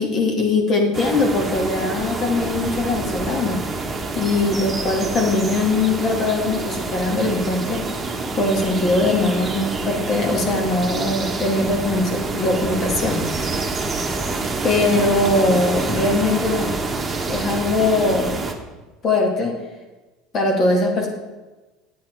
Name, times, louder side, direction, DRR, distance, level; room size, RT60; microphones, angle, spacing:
voice 1, 0.0-3.9 4.1-13.8 14.6-16.8 17.3-18.5 19.0-19.6 20.3-21.1, left 2 dB, 45° left, 1 dB, 2.3 m, -21 dB
sound 1, 0.9-18.5, right 3 dB, 20° right, 1.4 m, -27 dB
8.6 x 8.5 x 4.7 m, 1.2 s
supercardioid pair, 90°, 0 cm